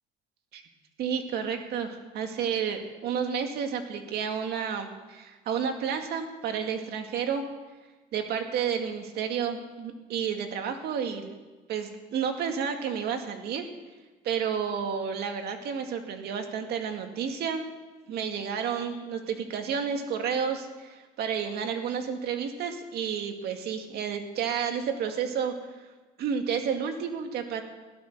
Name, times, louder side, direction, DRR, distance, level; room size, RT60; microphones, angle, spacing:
voice 1, 1.0-7.4 8.1-11.4 11.7-13.7 14.2-17.6 18.1-25.5 26.2-27.6, right 7 dB, 70° right, 5 dB, 2.2 m, -31 dB
16.0 x 12.5 x 6.8 m, 1.2 s
cardioid pair, 110°, 17 cm